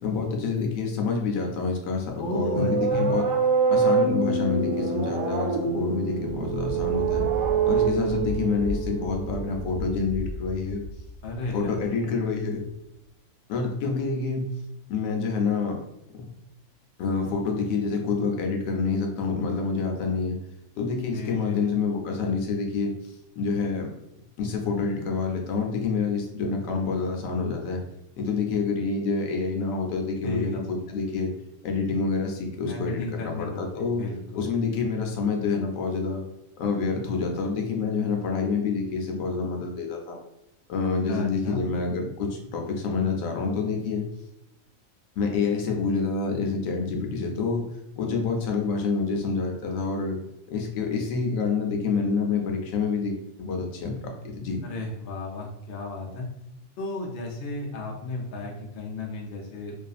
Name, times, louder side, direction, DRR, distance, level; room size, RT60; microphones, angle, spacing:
voice 1, 0.0-3.3 3.7-7.3 7.6-10.8 11.5-12.6 13.5-14.4 14.9-15.8 16.1-16.2 17.0-20.4 20.8-22.9 23.4-23.9 24.4-27.8 28.2-31.3 31.6-34.0 34.4-36.2 36.6-40.2 40.7-44.1 45.2-47.6 48.0-50.2 50.5-54.6, left 4 dB, 80° left, 2 dB, 1.0 m, -27 dB
sound 1, 2.1-9.9, right 5 dB, 85° right, 1.0 m, -26 dB
voice 2, 2.2-3.2 11.2-12.2 21.1-21.8 30.2-30.9 32.7-34.5 41.1-41.7 54.6-56.3 56.8-59.8, left 3 dB, 65° left, -1 dB, 0.6 m, -34 dB
Thunder, 6.2-12.7, equal, 65° right, 0.8 m, -36 dB
2.5 x 2.3 x 2.3 m, 0.84 s
omnidirectional pair, 1.4 m